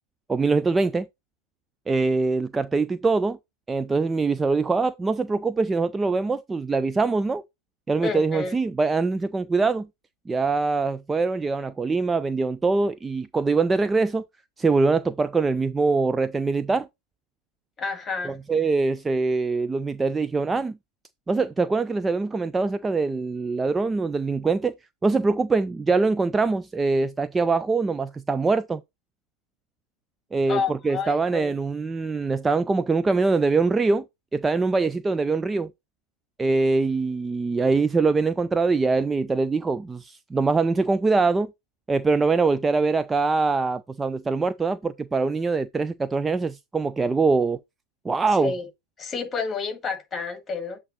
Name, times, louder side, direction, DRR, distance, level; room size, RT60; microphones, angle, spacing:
voice 1, 0.3-1.1 1.9-3.4 3.7-7.4 7.9-9.9 10.3-14.2 14.6-16.9 18.2-20.8 21.3-24.7 25.0-28.8 30.3-34.0 34.3-35.7 36.4-41.5 41.9-47.6 48.0-48.5, right 3 dB, 10° right, 0.3 m, -23 dB
voice 2, 8.0-8.5 17.8-18.4 30.5-31.5 48.4-48.7 49.0-50.8, left 5 dB, 20° left, 1.8 m, -30 dB
7.8 x 3.7 x 3.9 m
figure-of-eight pair, 90°, 0 cm